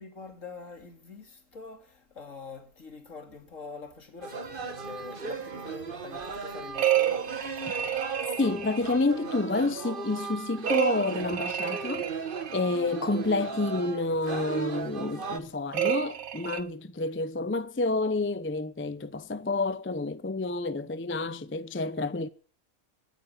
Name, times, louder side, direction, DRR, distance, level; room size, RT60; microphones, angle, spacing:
voice 1, 0.0-8.4, left 4 dB, 70° left, 3.0 m, -45 dB
sound 1, 4.2-15.4, right 5 dB, 40° right, 1.4 m, -36 dB
sound 2, 6.7-9.0 10.7-12.7 15.7-16.6, right 11 dB, 85° right, 1.4 m, -30 dB
voice 2, 8.4-12.1 12.5-22.3, left 3 dB, 15° left, 0.5 m, -29 dB
16.5 x 9.3 x 8.9 m
omnidirectional pair, 1.4 m